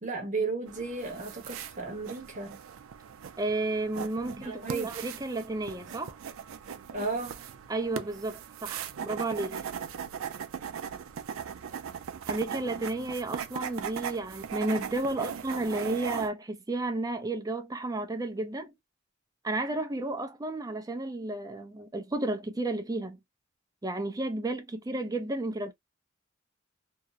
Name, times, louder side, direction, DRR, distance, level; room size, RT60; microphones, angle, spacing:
voice 1, 0.0-2.6 4.3-4.9 6.9-7.5, right 3 dB, 40° right, 1.1 m, -34 dB
sound 1, 0.7-16.3, right 7 dB, 90° right, 0.4 m, -39 dB
voice 2, 3.4-6.2 7.7-9.6 12.3-18.7 19.4-23.2 23.8-25.7, right 2 dB, 20° right, 0.5 m, -32 dB
2.7 x 2.0 x 2.3 m
head